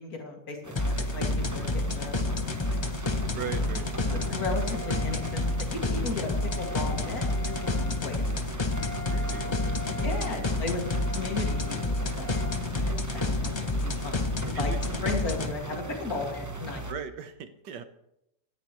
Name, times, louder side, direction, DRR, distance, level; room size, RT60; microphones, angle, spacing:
voice 1, 0.0-2.8 3.4-3.6 4.1-6.3 6.6-8.6 9.2-9.7 10.0-10.8 11.1-13.5 13.8-16.9, left 3 dB, 55° left, 1 dB, 2.8 m, -36 dB
sound 1, 0.6-16.9, right 2 dB, 15° right, 0.7 m, -41 dB
sound 2, 0.8-15.5, left 2 dB, 35° left, 0.4 m, -29 dB
Wind instrument woodwind instrument, 2.6-12.6, right 1 dB, 10° left, 3.9 m, -44 dB
voice 2, 3.3-3.9 9.1-10.1 12.3-12.5 14.5-14.8 16.9-17.8, right 7 dB, 80° right, 9 dB, 1.8 m, -39 dB
18.5 x 14.0 x 3.2 m, 0.79 s
omnidirectional pair, 1.9 m